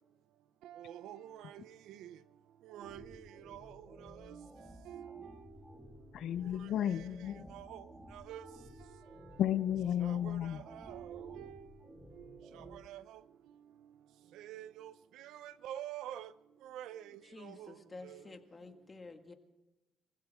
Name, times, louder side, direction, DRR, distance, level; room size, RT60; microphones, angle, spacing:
voice 1, 0.6-1.6 2.0-2.1 2.7-4.4 4.9-5.2 6.9-7.0 7.5-7.8 8.1-8.5 10.0-11.6 12.7-13.0 14.4-14.9 15.2-16.3 16.6-17.0 17.4-17.7 18.0-18.2, right 11 dB, 90° right, 0.6 m, -47 dB
sound 1, 2.8-12.8, equal, 15° right, 3.0 m, -54 dB
voice 2, 6.1-7.5 9.4-10.6, left 10 dB, 75° left, 0.5 m, -33 dB
voice 3, 16.9-19.3, left 3 dB, 25° left, 1.8 m, -51 dB
24.0 x 16.0 x 3.5 m
cardioid pair, 90°, 0 cm